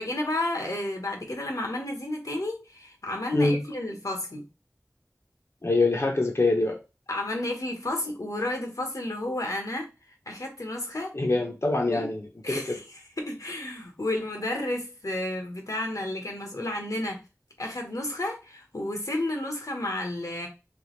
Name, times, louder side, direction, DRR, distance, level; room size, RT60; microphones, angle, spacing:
voice 1, 0.0-4.4 7.1-9.9 10.3-11.1 11.9-12.0 12.4-12.8 13.2-17.2 17.6-20.5, left 1 dB, 80° left, 1.1 m, -31 dB
voice 2, 3.3-3.6 5.6-6.8 11.1-12.8, left 2 dB, 55° left, 0.8 m, -25 dB
3.4 x 3.3 x 3.1 m
wide cardioid pair, 45°, 6 cm